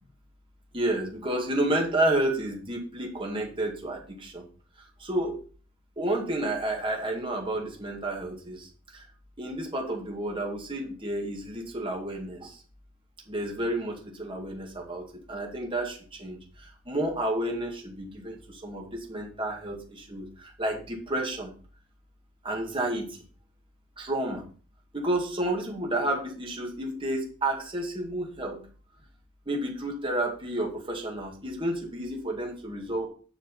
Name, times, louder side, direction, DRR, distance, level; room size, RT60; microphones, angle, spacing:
voice 1, 0.7-4.4 5.0-5.4 6.0-8.7 9.4-12.5 13.3-15.0 15.3-16.4 16.9-20.3 20.6-21.5 22.4-23.2 24.0-24.4 24.9-28.6 29.5-33.1, right 1 dB, 25° right, 0 dB, 2.1 m, -30 dB
7.8 x 6.0 x 5.5 m, 0.40 s
head